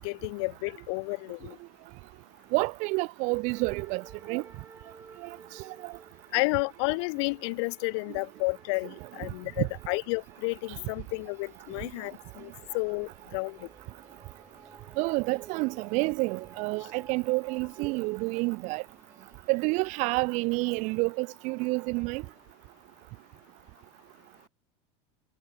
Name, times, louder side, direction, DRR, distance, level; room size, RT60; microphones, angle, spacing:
voice 1, 0.0-1.6 6.3-13.7, left 30 dB, 70° left, 0.5 m, -31 dB
voice 2, 2.5-4.4 5.2-5.4 5.6-5.9 9.6-9.7 15.0-18.8 19.5-22.2, right 26 dB, 55° right, 0.4 m, -29 dB
sound 1, 3.5-22.5, right 5 dB, 15° right, 3.9 m, -55 dB
supercardioid pair, 130°, 15 cm